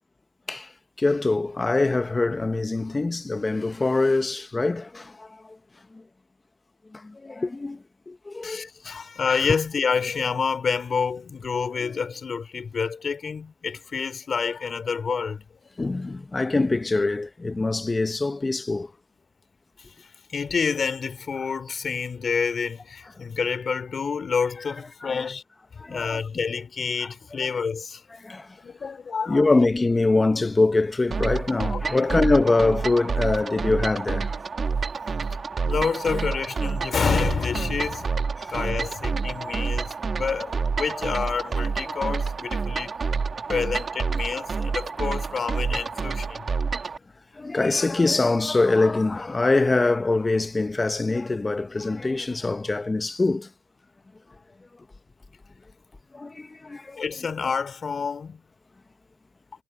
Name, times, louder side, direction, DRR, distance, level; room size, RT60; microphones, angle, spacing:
voice 1, 1.0-5.3 6.9-8.7 15.8-18.9 25.0-25.3 25.8-26.2 28.2-28.5 29.3-34.3 38.4-38.5 39.2-39.5 41.9-42.1 47.3-53.5 56.1-57.0, left 3 dB, 20° left, 1.3 m, -24 dB
voice 2, 8.4-15.5 19.9-25.4 25.9-28.0 28.6-29.5 31.7-32.1 35.6-38.2 38.5-43.0 43.5-46.4 57.0-58.4, left 5 dB, 45° left, 3.7 m, -28 dB
sound 1, 31.1-47.0, right 5 dB, 40° right, 1.5 m, -28 dB
cardioid pair, 90°, 0 cm